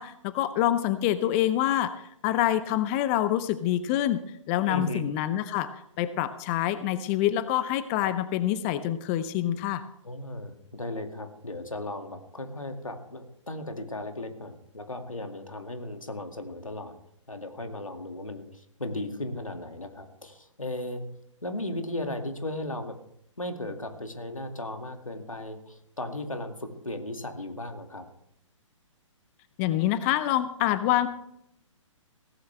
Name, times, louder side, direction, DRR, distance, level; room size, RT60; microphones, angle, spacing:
voice 1, 0.0-4.2 4.5-5.7 6.0-9.8 29.6-31.1, left 12 dB, 25° left, 13 dB, 0.7 m, -26 dB
voice 2, 4.7-5.0 10.0-17.0 17.3-21.0 21.4-23.0 23.4-28.0 30.8-30.9, left 1 dB, 90° left, 6 dB, 2.2 m, -36 dB
17.0 x 15.5 x 3.4 m, 0.73 s
figure-of-eight pair, 130°, 17 cm